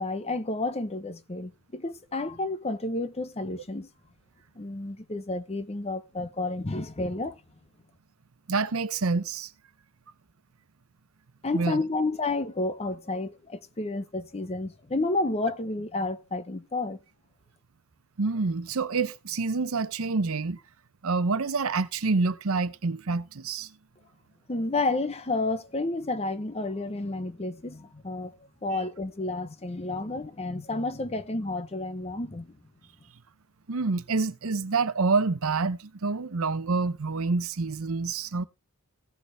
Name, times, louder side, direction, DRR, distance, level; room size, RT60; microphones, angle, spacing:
voice 1, 0.0-3.9 4.6-7.4 11.4-17.0 24.5-28.3 28.6-32.6, left 2 dB, 30° left, 0.8 m, -31 dB
voice 2, 8.5-9.5 11.5-11.8 18.2-20.6 21.0-23.7 33.7-38.5, right 4 dB, 65° right, 0.7 m, -27 dB
16.5 x 6.6 x 3.3 m
head